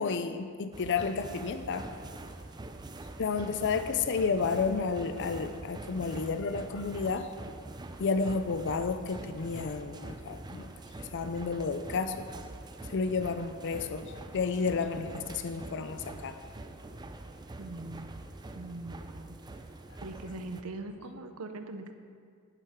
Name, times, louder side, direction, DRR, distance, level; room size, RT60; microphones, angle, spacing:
voice 1, 0.0-2.0 3.2-7.3 8.0-10.7 11.0-12.3 12.8-16.4, left 5 dB, 55° left, 10 dB, 0.4 m, -31 dB
sound 1, 0.7-20.6, right 2 dB, 20° right, 0.5 m, -45 dB
voice 2, 17.6-18.2 18.6-19.4 20.0-21.9, right 2 dB, 75° right, 7 dB, 0.7 m, -41 dB
11.0 x 10.5 x 3.6 m, 2.2 s
head